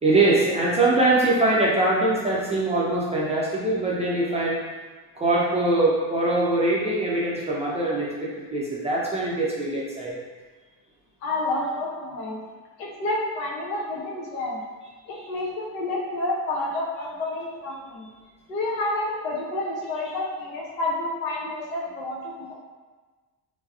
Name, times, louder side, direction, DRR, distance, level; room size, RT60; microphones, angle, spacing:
voice 1, 0.0-4.6 5.2-10.1, right 2 dB, 15° right, -6 dB, 0.3 m, -22 dB
voice 2, 11.2-12.4 12.8-14.6 15.1-18.1 18.5-22.5, left 2 dB, 80° left, -3 dB, 0.7 m, -29 dB
3.2 x 2.0 x 2.3 m, 1.3 s
hypercardioid pair, 65°, 49 cm